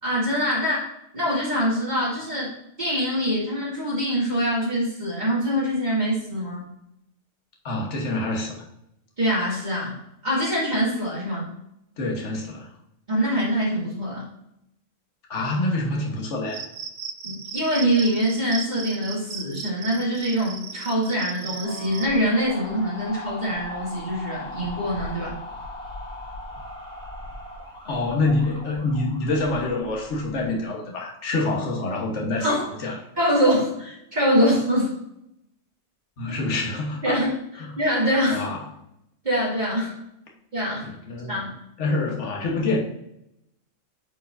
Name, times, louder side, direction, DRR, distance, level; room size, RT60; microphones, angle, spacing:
voice 1, 0.0-2.5 2.8-6.7 9.2-10.0 10.2-11.5 13.1-14.2 17.2-25.4 32.4-32.7 33.2-34.9 37.0-37.3 37.8-38.5 39.2-40.0 40.5-40.9 41.3-41.5, equal, 35° right, -8 dB, 2.4 m, -24 dB
voice 2, 7.6-8.6 12.0-12.7 15.3-16.7 27.8-33.0 36.2-37.3 37.6-37.8 38.3-38.6 40.8-41.4 41.8-42.8, left 2 dB, 70° left, 0 dB, 1.6 m, -26 dB
Cricket, 16.5-22.1, right 6 dB, 55° right, 0.6 m, -36 dB
sound 1, 21.6-30.6, left 1 dB, 5° left, 1.5 m, -38 dB
8.9 x 4.7 x 2.6 m, 0.80 s
omnidirectional pair, 1.3 m